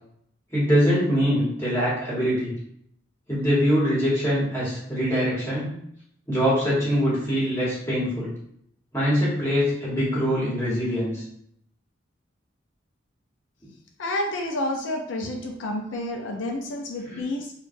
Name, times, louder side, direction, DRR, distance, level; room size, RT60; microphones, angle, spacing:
voice 1, 0.5-2.5 3.3-5.7 6.3-8.3 8.9-11.2 17.0-17.2, equal, 15° left, -8 dB, 1.3 m, -23 dB
voice 2, 14.0-17.5, left 1 dB, 80° left, 1 dB, 0.4 m, -29 dB
3.7 x 2.3 x 2.6 m, 0.72 s
head